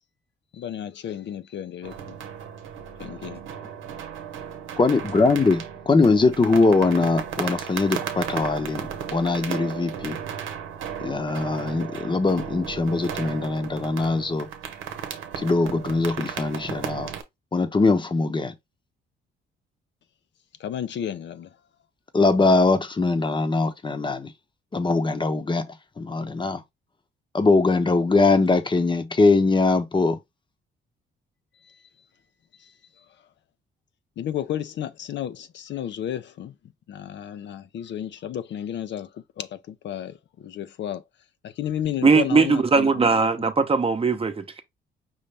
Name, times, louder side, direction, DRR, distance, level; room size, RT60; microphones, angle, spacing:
voice 1, 0.5-2.0 3.0-3.4 20.6-21.5 31.6-31.8 32.6-32.7 34.2-36.5 36.9-41.0 41.4-43.0, left 10 dB, 65° left, 0.6 m, -32 dB
sound 1, 1.8-17.2, right 8 dB, 90° right, 0.9 m, -35 dB
voice 2, 4.8-10.2 11.0-14.5 15.4-17.1 17.5-18.5 22.1-24.3 24.7-25.7 26.0-26.6 27.3-30.2, left 3 dB, 25° left, 0.9 m, -21 dB
voice 3, 42.0-44.6, right 4 dB, 30° right, 0.8 m, -20 dB
5.5 x 2.6 x 3.3 m
cardioid pair, 90°, 20 cm